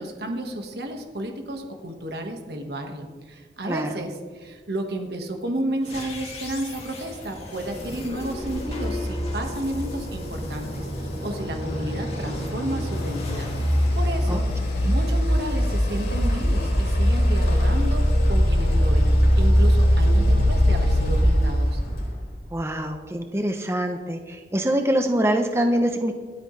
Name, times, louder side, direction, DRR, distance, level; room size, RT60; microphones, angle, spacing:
voice 1, 0.0-13.5 14.0-14.4 14.8-21.8, right 1 dB, 65° right, 3 dB, 1.6 m, -32 dB
sound 1, 5.8-15.0, left 1 dB, 35° left, 2.4 m, -36 dB
sound 2, 7.8-22.2, equal, 65° left, 4.2 m, -22 dB
voice 2, 22.5-26.1, right 1 dB, 15° right, 5 dB, 0.7 m, -24 dB
25.5 x 8.9 x 3.3 m, 1.6 s
head